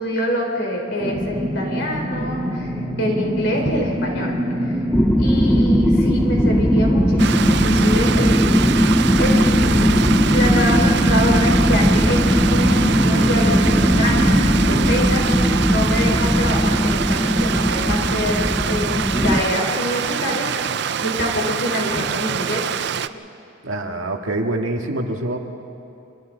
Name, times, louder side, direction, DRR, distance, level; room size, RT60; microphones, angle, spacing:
voice 1, 0.0-4.7 5.2-8.8 9.2-22.9, equal, 60° left, 0 dB, 4.1 m, -26 dB
sound 1, 1.0-14.9, right 1 dB, 20° right, 2.0 m, -24 dB
sound 2, 4.9-19.4, equal, 5° left, 0.6 m, -18 dB
Stream, 7.2-23.1, right 8 dB, 55° right, 0.5 m, -25 dB
voice 2, 23.6-25.4, right 1 dB, 85° right, 2 dB, 1.9 m, -25 dB
30.0 x 25.0 x 4.0 m, 2.6 s
head